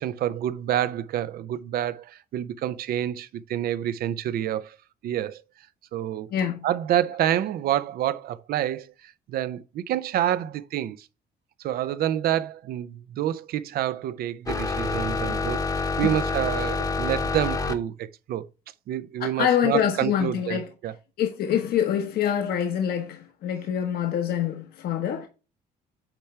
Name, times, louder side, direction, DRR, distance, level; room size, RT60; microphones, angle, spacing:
voice 1, 0.0-4.8 5.0-5.4 5.9-6.3 6.6-11.1 11.6-18.5 18.9-20.9, right 11 dB, 65° right, 0.6 m, -28 dB
voice 2, 6.3-6.7 16.0-16.1 19.2-20.7 21.2-25.3, left 9 dB, 65° left, 1.1 m, -25 dB
sound 1, 14.5-17.7, left 4 dB, 20° left, 1.0 m, -27 dB
8.9 x 3.4 x 4.3 m
cardioid pair, 110°, 17 cm